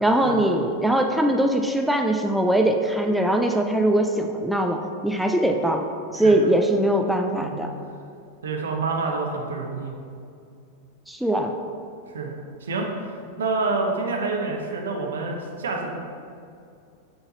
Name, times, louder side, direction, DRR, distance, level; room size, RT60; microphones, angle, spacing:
voice 1, 0.0-5.8 6.1-7.7 11.1-11.5, right 1 dB, ahead, 3 dB, 0.4 m, -21 dB
voice 2, 8.4-9.9 12.1-12.3 12.6-12.9 13.4-15.9, right 3 dB, 65° right, 1 dB, 0.8 m, -27 dB
6.9 x 3.9 x 4.0 m, 2.4 s
figure-of-eight pair, 90°, 0 cm